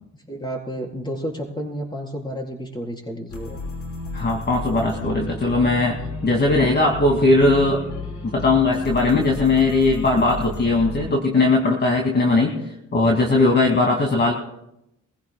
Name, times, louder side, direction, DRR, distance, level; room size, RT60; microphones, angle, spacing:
voice 1, 0.3-3.6, equal, 15° left, 0 dB, 4.0 m, -31 dB
sound 1, 3.3-11.1, left 2 dB, 75° left, 5.1 m, -33 dB
voice 2, 4.1-7.8 8.2-12.5 12.9-14.3, left 2 dB, 35° left, 0 dB, 2.3 m, -19 dB
24.0 x 15.5 x 2.3 m, 0.82 s
cardioid pair, 90°, 30 cm